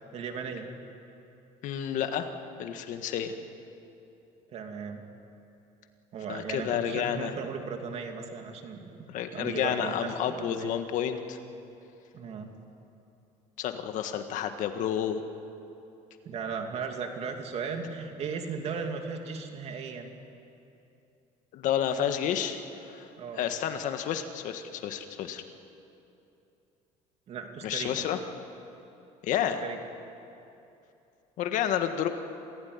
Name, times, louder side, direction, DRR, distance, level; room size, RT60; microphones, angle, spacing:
voice 1, 0.1-0.7 4.5-5.0 6.1-9.1 9.3-10.7 12.1-12.5 16.2-20.1 23.2-23.5 27.3-27.9 29.6-29.8, right 5 dB, 45° right, 4 dB, 2.7 m, -36 dB
voice 2, 1.6-2.3 2.6-3.3 6.3-7.3 9.1-11.4 13.6-15.2 21.5-22.6 22.9-23.1 23.4-25.4 27.6-28.2 29.2-29.6 31.4-32.1, left 9 dB, 60° left, 7 dB, 1.7 m, -30 dB
27.0 x 16.5 x 9.7 m, 2.8 s
cardioid pair, 150°, 14 cm